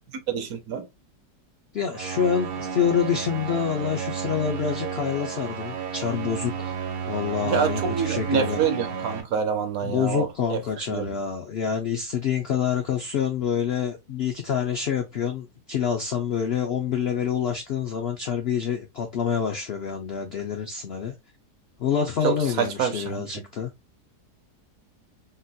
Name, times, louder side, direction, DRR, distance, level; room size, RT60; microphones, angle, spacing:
voice 1, 0.3-0.9 7.4-11.0 22.2-23.2, right 6 dB, 70° right, 1.0 m, -26 dB
voice 2, 1.7-6.8 7.1-8.6 9.8-21.1 21.8-23.7, left 7 dB, 80° left, 0.5 m, -27 dB
sound 1, 1.9-9.2, right 7 dB, 85° right, 1.3 m, -32 dB
3.9 x 2.1 x 2.6 m
omnidirectional pair, 1.7 m